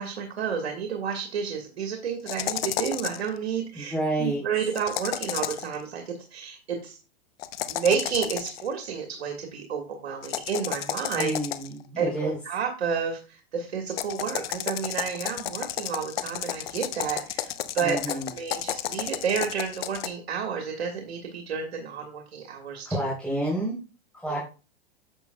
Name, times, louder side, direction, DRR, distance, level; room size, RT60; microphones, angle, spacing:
voice 1, 0.0-7.0 7.7-11.3 12.0-22.8 24.3-24.4, right 6 dB, 85° right, 3 dB, 1.6 m, -30 dB
sound 1, 2.3-3.3 4.7-5.7 7.4-8.7 10.2-11.8 13.9-20.1, left 12 dB, 65° left, 0.8 m, -32 dB
voice 2, 3.8-4.4 11.2-12.4 17.8-18.3 22.9-23.8 24.1-24.4, right 1 dB, 5° left, -6 dB, 3.4 m, -29 dB
9.8 x 7.3 x 2.2 m, 0.33 s
hypercardioid pair, 125°, 31 cm